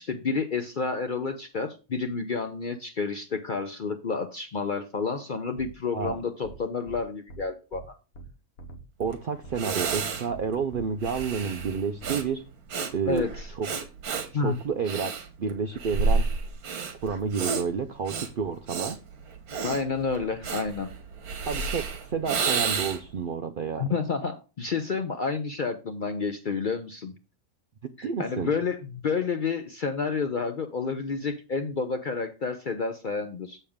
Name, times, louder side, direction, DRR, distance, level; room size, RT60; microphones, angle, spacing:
voice 1, 0.0-7.9 13.1-13.5 14.3-14.6 19.6-20.9 23.8-27.1 28.0-33.6, left 4 dB, 50° left, 7 dB, 0.6 m, -30 dB
sound 1, 5.6-5.7 6.0-6.1 6.4-6.6 6.9-7.0 7.3-7.4 7.7-7.8 8.1-8.3 8.6-9.1 9.4-9.6 9.9-10.0 10.3-10.4 10.7-10.8 11.1-11.3 11.6-11.7 12.0-12.2, right 3 dB, 75° left, 1.5 m, -43 dB
voice 2, 9.0-12.4 12.9-13.3 13.6-13.7 14.3-15.1 15.4-16.3 17.0-19.0 21.5-21.8 22.1-23.9 28.0-28.5, right 6 dB, 60° right, 8 dB, 0.5 m, -30 dB
Breathing, 9.1-9.2 9.5-23.2, right 4 dB, 90° right, 1.6 m, -31 dB
7.3 x 6.8 x 3.5 m, 0.30 s
omnidirectional pair, 1.5 m